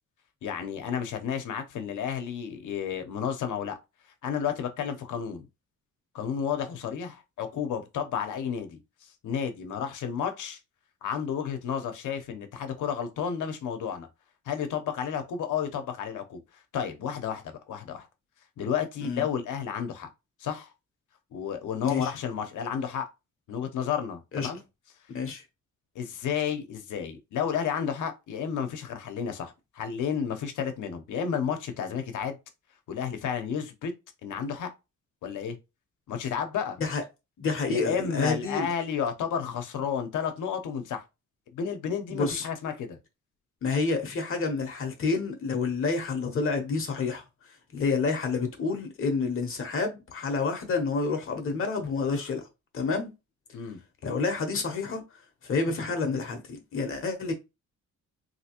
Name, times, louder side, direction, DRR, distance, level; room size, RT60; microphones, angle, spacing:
voice 1, 0.4-3.8 4.2-5.5 6.1-10.6 11.0-14.1 14.5-16.4 16.7-18.1 18.6-20.1 20.4-20.7 21.3-23.1 23.5-24.6 25.9-32.4 32.9-33.9 34.2-34.7 35.2-35.6 36.1-36.8 37.7-41.0 41.5-43.0 53.5-53.8, left 7 dB, 75° left, 0.8 m, -31 dB
voice 2, 21.8-22.1 24.3-24.5 25.1-25.4 36.8-37.0 37.4-38.7 42.1-42.5 43.6-47.2 47.7-52.5 52.7-53.1 54.0-55.0 55.4-57.3, left 4 dB, 45° left, 0.8 m, -29 dB
3.3 x 2.7 x 2.9 m
cardioid pair, 165°, 31 cm